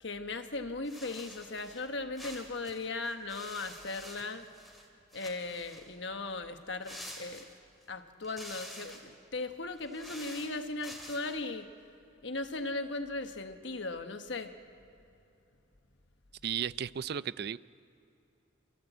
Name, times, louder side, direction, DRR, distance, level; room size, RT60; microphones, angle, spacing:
voice 1, 0.0-4.5 5.1-7.5 7.9-11.7 12.2-14.6, left 3 dB, 60° left, 7 dB, 1.3 m, -38 dB
sound 1, 0.8-1.9 2.1-4.9 5.1-5.9 6.8-7.8 8.2-9.1 9.7-11.4, equal, ahead, 2.7 m, -48 dB
voice 2, 16.4-17.6, right 8 dB, 50° right, 17 dB, 0.4 m, -34 dB
27.5 x 14.5 x 8.1 m, 2.8 s
head